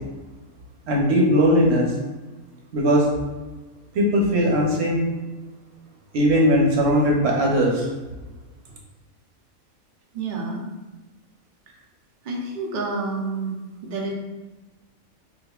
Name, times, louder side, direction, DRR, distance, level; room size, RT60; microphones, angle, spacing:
voice 1, 0.9-1.9 2.7-3.1 3.9-5.0 6.1-7.9, equal, 60° right, -1 dB, 0.8 m, -19 dB
voice 2, 10.1-10.6 11.7-11.8 12.2-13.5 13.8-14.1, right 3 dB, 85° right, -1 dB, 0.4 m, -29 dB
4.1 x 2.4 x 2.3 m, 1.2 s
omnidirectional pair, 1.5 m